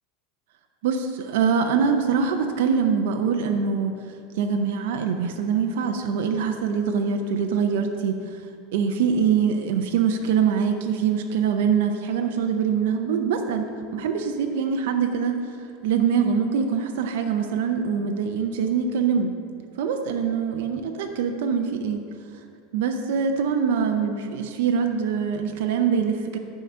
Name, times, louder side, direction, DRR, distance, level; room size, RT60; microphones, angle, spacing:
voice 1, 0.8-4.0 4.4-8.4 8.7-15.5 15.8-19.3 19.8-22.0 22.7-26.4, right 6 dB, 75° right, 5 dB, 0.5 m, -24 dB
9.2 x 3.8 x 5.4 m, 2.3 s
supercardioid pair, 155°, 0 cm